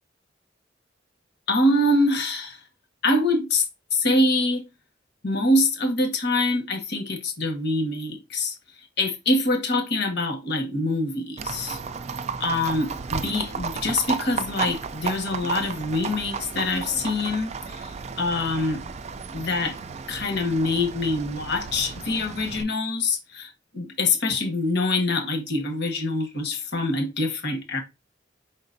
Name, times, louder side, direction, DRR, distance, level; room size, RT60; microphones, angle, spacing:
voice 1, 1.5-2.6 3.0-3.6 3.9-4.6 5.2-8.6 9.0-11.8 12.4-18.8 19.3-19.8 20.1-27.8, left 2 dB, 60° left, 1.2 m, -25 dB
Livestock farm animals working animals, 11.4-22.6, right 5 dB, 35° right, 0.4 m, -33 dB
4.9 x 3.9 x 2.6 m
head